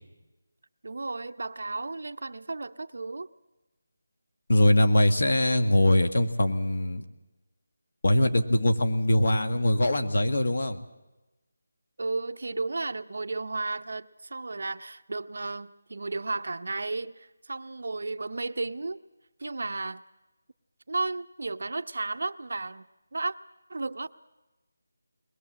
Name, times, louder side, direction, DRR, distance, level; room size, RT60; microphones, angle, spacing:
voice 1, 0.8-3.3 12.0-19.0 19.4-20.0 20.9-22.8 23.1-23.4 23.7-24.1, right 3 dB, 50° right, 11 dB, 0.7 m, -33 dB
voice 2, 4.5-7.0 8.0-10.8, left 1 dB, 50° left, 8 dB, 1.5 m, -22 dB
22.0 x 20.5 x 7.5 m, 1.1 s
figure-of-eight pair, 180°, 0 cm